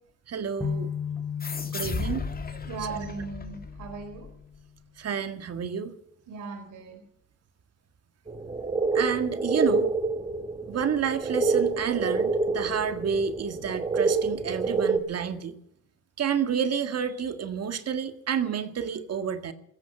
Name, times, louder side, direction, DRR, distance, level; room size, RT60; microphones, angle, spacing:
voice 1, 0.3-0.9 1.7-2.3 5.0-5.9 8.9-9.9 10.7-15.6 16.2-19.5, right 7 dB, 55° right, 9 dB, 1.9 m, -29 dB
sound 1, 0.6-4.6, left 7 dB, 5° left, 3.7 m, -36 dB
sound 2, 1.4-4.6, left 4 dB, 30° left, 2.1 m, -36 dB
voice 2, 2.6-4.3 6.3-7.0, right 4 dB, 80° right, 4 dB, 4.1 m, -38 dB
sound 3, 8.3-15.0, right 3 dB, 20° right, 1.4 m, -27 dB
17.5 x 14.5 x 5.5 m, 0.73 s
cardioid pair, 90°, 30 cm